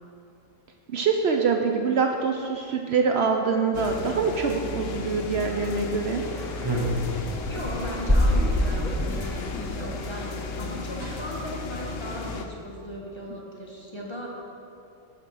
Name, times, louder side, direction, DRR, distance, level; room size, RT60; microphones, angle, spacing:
voice 1, 0.9-6.2, right 5 dB, 65° right, 3 dB, 0.8 m, -24 dB
sound 1, 3.7-12.4, left 4 dB, 80° left, 1.1 m, -35 dB
sound 2, 5.5-10.7, equal, ahead, 0.9 m, -42 dB
sound 3, 6.6-9.2 10.4-10.5 10.6-10.7 10.9-11.3 11.7-12.0, equal, 20° right, 1.1 m, -25 dB
voice 2, 7.5-14.3, equal, 20° left, -3 dB, 1.2 m, -37 dB
11.0 x 4.4 x 6.2 m, 2.7 s
omnidirectional pair, 1.3 m